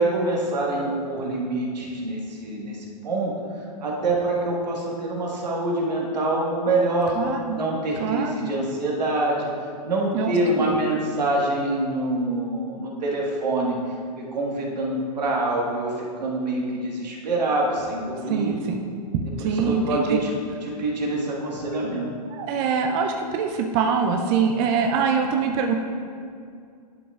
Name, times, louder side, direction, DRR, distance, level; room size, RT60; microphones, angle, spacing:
voice 1, 0.0-3.3 3.8-7.2 7.6-9.5 9.8-13.8 14.1-18.5 19.4-20.3 20.6-22.1, right 2 dB, 75° right, -2 dB, 1.7 m, -25 dB
voice 2, 7.1-7.6 8.0-8.5 10.1-11.0 18.2-18.8 19.1-20.2 22.3-25.7, right 6 dB, 35° right, 3 dB, 0.5 m, -24 dB
11.0 x 6.0 x 2.4 m, 2.3 s
hypercardioid pair, 115°, 21 cm